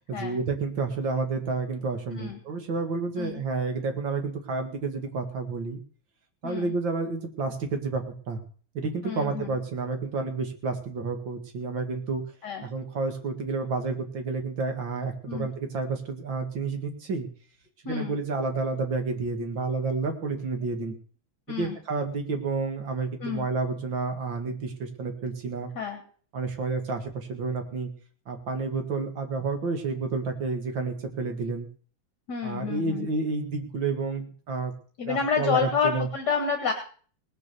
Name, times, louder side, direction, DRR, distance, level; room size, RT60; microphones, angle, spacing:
voice 1, 0.1-5.8 6.4-8.4 8.7-12.2 12.6-17.3 17.8-21.0 21.5-25.7 26.3-27.9 28.3-31.7 32.4-34.7 35.0-36.1, right 4 dB, 65° right, 5 dB, 2.6 m, -30 dB
voice 2, 6.4-6.7 9.0-9.5 12.4-12.6 15.3-15.5 17.9-18.2 21.5-21.8 23.2-23.5 25.8-26.0 32.3-33.1 35.0-36.7, left 6 dB, 55° left, 5 dB, 2.1 m, -29 dB
18.5 x 7.0 x 6.8 m, 0.44 s
omnidirectional pair, 2.2 m